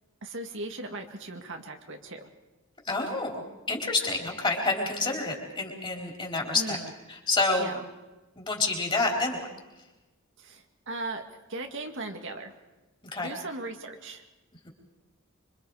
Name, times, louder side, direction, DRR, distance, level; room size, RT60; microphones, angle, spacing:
voice 1, 0.2-2.3 6.5-6.9 7.6-7.8 10.4-11.2 11.5-12.5 13.2-14.2, right 2 dB, 60° right, 4 dB, 2.0 m, -38 dB
voice 2, 2.8-3.4 3.7-6.8 7.1-7.7 8.4-9.5 13.1-13.3 14.6-14.7, left 3 dB, 25° left, 1 dB, 4.0 m, -28 dB
26.0 x 24.5 x 4.9 m, 1.1 s
head